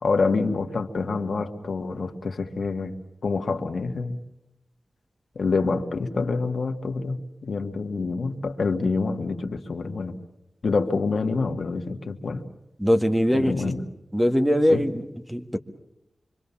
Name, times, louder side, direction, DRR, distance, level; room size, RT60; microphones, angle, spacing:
voice 1, 0.0-3.0 3.2-4.2 5.4-10.1 10.6-12.4 13.3-13.8 14.7-14.8, left 4 dB, 75° left, 5 dB, 1.8 m, -26 dB
voice 2, 12.8-13.5 14.1-15.0 15.3-15.6, equal, 5° right, 6 dB, 1.7 m, -21 dB
26.5 x 24.0 x 7.2 m, 0.87 s
wide cardioid pair, 80°, 0 cm